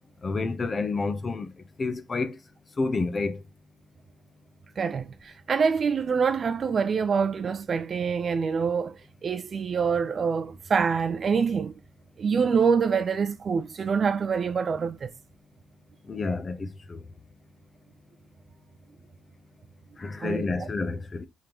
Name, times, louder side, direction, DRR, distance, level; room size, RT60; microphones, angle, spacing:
voice 1, 0.2-1.5 1.8-2.4 2.8-3.4 16.1-17.0 20.0-21.3, left 3 dB, 35° left, 0.7 m, -29 dB
voice 2, 4.8-11.7 12.2-15.1 20.2-20.7, right 6 dB, 45° right, 0.5 m, -26 dB
3.7 x 3.3 x 2.9 m
cardioid pair, 90°, 0 cm